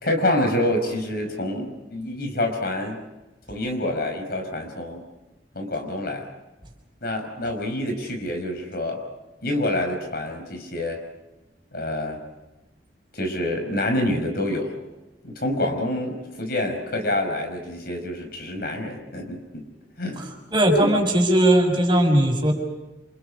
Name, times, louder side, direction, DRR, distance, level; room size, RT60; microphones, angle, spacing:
voice 1, 0.0-3.0 3.5-5.0 5.5-6.3 7.0-9.0 9.4-11.0 11.7-12.2 13.1-14.8 15.2-19.7 20.0-20.3 20.8-20.9, left 1 dB, 60° left, 4 dB, 5.6 m, -27 dB
voice 2, 20.5-22.5, right 1 dB, 25° right, 1 dB, 6.0 m, -18 dB
29.5 x 28.0 x 5.0 m, 1.0 s
head